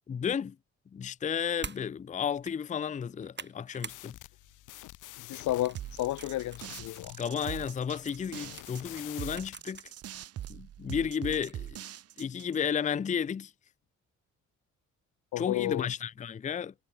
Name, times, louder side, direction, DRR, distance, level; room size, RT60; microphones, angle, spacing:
voice 1, 0.1-0.6 0.9-4.2 7.2-9.8 10.5-11.8 12.2-13.5 15.4-16.7, left 7 dB, 25° left, 0.5 m, -33 dB
sound 1, 1.6-1.9 2.3-2.6 3.0-4.0 4.4-4.7 5.3-6.6 7.1-7.2 8.1-9.9 10.4-10.5 11.3-11.7, right 5 dB, 35° right, 4.1 m, -46 dB
sound 2, 3.8-9.6, left 17 dB, 90° left, 1.1 m, -48 dB
voice 2, 5.2-7.2 15.3-15.9, left 15 dB, 70° left, 0.7 m, -32 dB
sound 3, 5.7-12.6, right 12 dB, 55° right, 0.7 m, -42 dB
cardioid pair, 90°, 30 cm